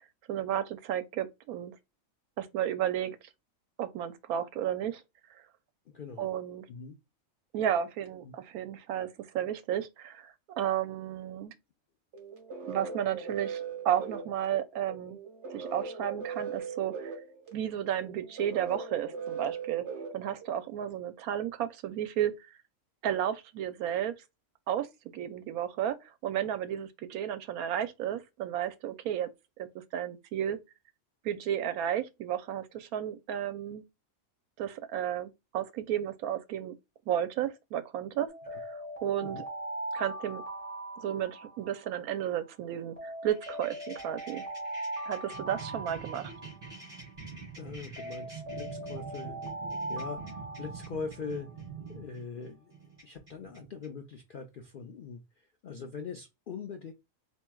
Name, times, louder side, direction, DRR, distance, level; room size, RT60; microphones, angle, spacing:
voice 1, 0.3-1.8 2.4-3.2 3.8-5.0 6.2-6.6 7.5-11.5 12.6-15.2 15.5-17.1 17.5-19.8 20.1-22.3 23.0-24.1 24.7-24.9 25.1-29.3 29.6-30.6 31.2-33.8 34.6-36.7 37.1-38.3 38.6-39.4 39.9-40.4 41.0-44.4 45.1-46.3, right 10 dB, 90° right, 1.1 m, -33 dB
voice 2, 5.9-6.4 6.7-7.0 8.2-8.4 38.5-38.6 39.2-39.4 47.6-49.4 49.9-51.5 51.9-52.7 53.0-56.9, left 5 dB, 70° left, 0.5 m, -42 dB
sound 1, 12.1-20.8, right 5 dB, 55° right, 1.4 m, -40 dB
Alarm, 38.3-42.4 43.0-47.4 48.0-51.8, right 1 dB, 10° left, 1.6 m, -40 dB
sound 2, 43.3-53.9, right 5 dB, 25° right, 2.2 m, -46 dB
4.4 x 2.9 x 2.2 m
omnidirectional pair, 1.5 m